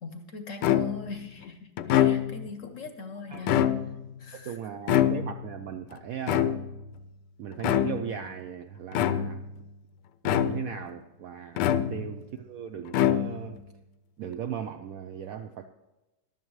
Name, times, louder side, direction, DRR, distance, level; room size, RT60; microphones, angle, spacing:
voice 1, 0.0-3.6 4.2-4.6 11.8-11.9, left 4 dB, 60° left, 7 dB, 0.9 m, -41 dB
sound 1, 0.6-1.2 1.8-2.5 3.3-4.1 4.9-5.6 6.3-6.9 7.6-8.2 8.9-9.5 10.2-10.8 11.6-12.3 12.9-13.6, left 11 dB, 75° left, 1.2 m, -25 dB
voice 2, 4.3-6.5 7.4-9.4 10.2-13.6 14.2-15.7, right 8 dB, 75° right, 7 dB, 0.8 m, -37 dB
14.5 x 11.0 x 3.1 m, 1.0 s
omnidirectional pair, 1.9 m